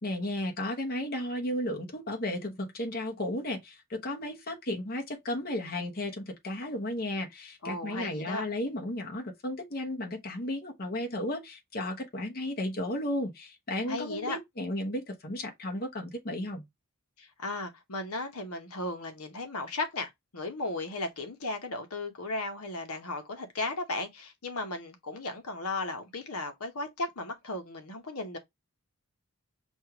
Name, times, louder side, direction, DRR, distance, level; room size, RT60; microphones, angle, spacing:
voice 1, 0.0-16.6, left 1 dB, 40° left, 1.0 m, -34 dB
voice 2, 7.6-8.4 13.9-14.4 17.2-28.4, left 2 dB, 80° left, 1.0 m, -35 dB
6.4 x 2.4 x 2.9 m
head